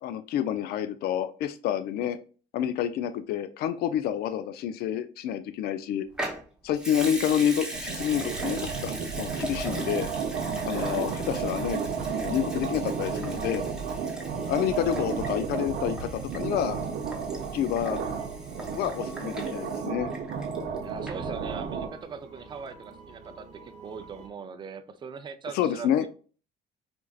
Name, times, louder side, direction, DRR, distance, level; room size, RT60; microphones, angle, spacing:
voice 1, 0.0-2.2 2.5-6.1 6.6-10.1 10.6-11.8 12.1-13.6 14.5-16.8 17.5-18.0 18.8-20.1 25.5-26.1, left 10 dB, 65° left, 10 dB, 0.4 m, -28 dB
Water tap faucet / Sink (filling or washing) / Liquid, 6.1-20.8 21.1-21.2, right 1 dB, 5° right, 0.9 m, -40 dB
sound 1, 7.7-21.9, right 6 dB, 70° right, 0.7 m, -32 dB
voice 2, 10.7-11.0 14.8-15.2 20.8-26.1, right 6 dB, 25° right, 7 dB, 0.4 m, -41 dB
sound 2, 14.4-24.3, right 4 dB, 45° right, 0.9 m, -49 dB
4.4 x 2.5 x 2.3 m, 0.38 s
cardioid pair, 110°, 17 cm